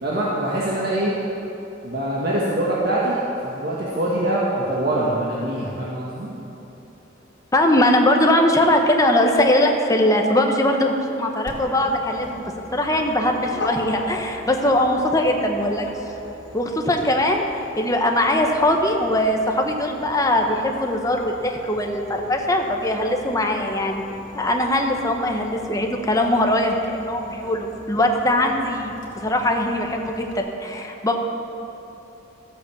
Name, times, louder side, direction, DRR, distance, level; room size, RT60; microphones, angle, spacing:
voice 1, 0.0-1.1 1.8-6.3, right 1 dB, 55° right, -6 dB, 1.6 m, -24 dB
voice 2, 7.5-12.4 12.7-15.9 16.5-24.0 24.3-31.2, left 1 dB, 20° left, 2 dB, 1.1 m, -21 dB
Dog, 11.4-30.4, left 1 dB, 85° left, 2.6 m, -40 dB
13.5 x 8.3 x 7.2 m, 2.9 s
head